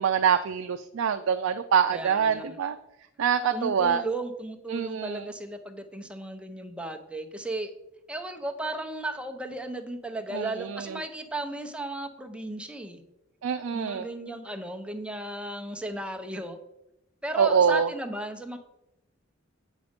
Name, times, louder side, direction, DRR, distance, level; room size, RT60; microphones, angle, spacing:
voice 1, 0.0-2.8 3.2-4.0 4.7-5.2 10.3-11.0 13.4-14.1 17.4-17.9, right 7 dB, 90° right, 8 dB, 0.4 m, -25 dB
voice 2, 1.9-2.6 3.5-7.7 8.1-13.0 13.7-16.6 17.2-18.6, right 2 dB, 5° right, 4 dB, 0.7 m, -35 dB
8.3 x 5.3 x 5.1 m, 0.91 s
head